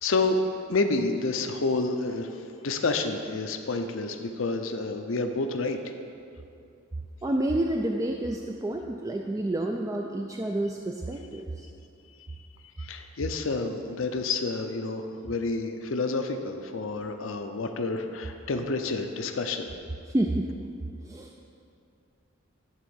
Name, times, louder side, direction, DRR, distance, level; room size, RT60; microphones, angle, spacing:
voice 1, 0.0-0.4 0.7-5.8 12.8-19.7, left 3 dB, 75° left, 6 dB, 0.6 m, -29 dB
voice 2, 7.2-11.7 20.1-20.5 21.0-21.3, right 1 dB, 15° right, 2 dB, 0.3 m, -29 dB
11.0 x 3.7 x 7.0 m, 2.5 s
head